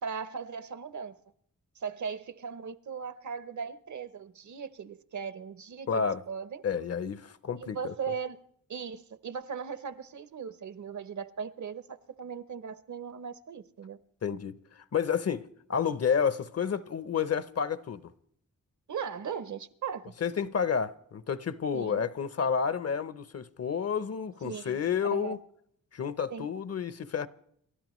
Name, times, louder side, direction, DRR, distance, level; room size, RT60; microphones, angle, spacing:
voice 1, 0.0-1.2 1.8-6.6 7.6-8.4 8.7-14.0 18.9-20.1 21.7-22.0 24.4-24.8 25.1-25.4 26.3-26.5, right 6 dB, 60° right, 0.8 m, -38 dB
voice 2, 5.9-6.2 6.6-7.9 14.2-14.6 14.9-18.0 20.2-25.4 25.9-27.3, left 7 dB, 50° left, 0.7 m, -30 dB
29.0 x 12.5 x 3.1 m
wide cardioid pair, 105°, 33 cm